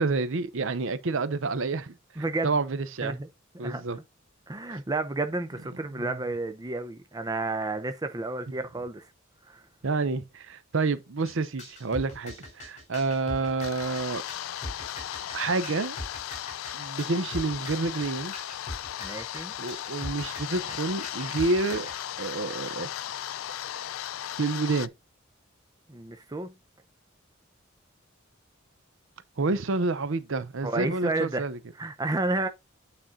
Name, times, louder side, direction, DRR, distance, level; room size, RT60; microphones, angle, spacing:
voice 1, 0.0-1.9 2.4-3.1 3.6-4.0 6.0-6.1 9.8-14.2 15.3-16.0 16.7-18.3 19.6-21.9 22.2-22.9 24.4-24.9 29.4-31.6, right 3 dB, 70° right, 0.7 m, -28 dB
voice 2, 2.2-2.5 3.0-3.3 3.6-3.8 4.5-9.0 9.5-9.6 19.0-19.5 25.9-26.5 30.6-31.4 31.8-32.5, right 2 dB, 20° right, 0.6 m, -31 dB
sound 1, 11.3-22.0, left 1 dB, 35° left, 3.4 m, -41 dB
sound 2, 13.5-24.9, left 11 dB, 85° left, 0.3 m, -36 dB
8.9 x 4.3 x 3.7 m
head